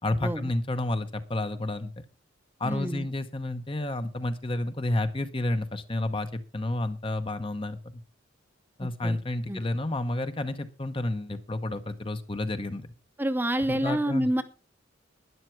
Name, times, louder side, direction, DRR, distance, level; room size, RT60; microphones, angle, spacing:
voice 1, 0.0-1.9 2.6-8.0 8.8-12.9 13.7-14.3, left 2 dB, 25° left, 9 dB, 0.9 m, -30 dB
voice 2, 2.6-3.1 8.8-9.2 9.5-9.6 13.2-14.4, right 1 dB, 10° right, 9 dB, 0.8 m, -28 dB
12.5 x 10.5 x 4.6 m, 0.35 s
head